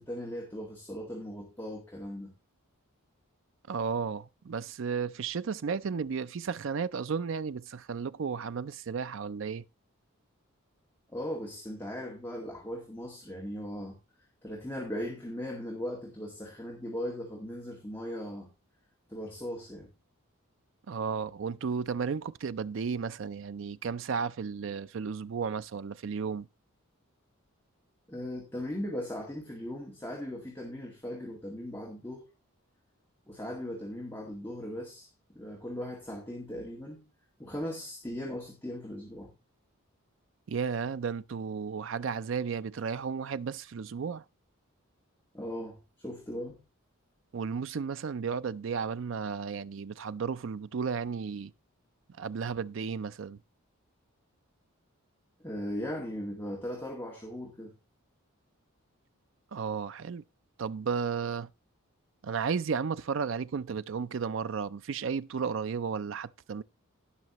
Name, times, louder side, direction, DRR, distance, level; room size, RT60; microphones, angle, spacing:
voice 1, 0.0-2.3 11.1-14.0 14.4-18.5 19.1-19.9 28.1-32.3 33.3-35.1 35.3-37.0 37.4-39.3 45.3-46.6 55.4-57.7, equal, 10° left, 1.9 m, -38 dB
voice 2, 3.7-9.6 20.9-26.5 40.5-44.2 47.3-51.5 52.2-53.4 59.5-60.2 60.6-61.5 62.2-66.6, right 6 dB, 60° right, 0.4 m, -33 dB
17.0 x 5.8 x 3.0 m
head